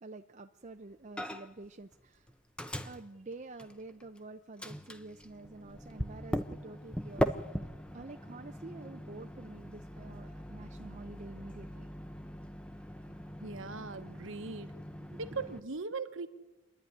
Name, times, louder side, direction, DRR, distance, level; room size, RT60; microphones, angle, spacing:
voice 1, 0.0-2.3 2.8-7.3 7.9-11.9 15.0-15.4, right 2 dB, 35° right, 6 dB, 0.6 m, -48 dB
Microwave oven, 1.2-1.7 1.9-4.2 4.6-15.6, equal, 5° left, 0.7 m, -40 dB
voice 2, 13.4-14.7 15.2-16.3, right 4 dB, 65° right, 10 dB, 1.1 m, -39 dB
27.5 x 11.0 x 9.7 m, 1.1 s
head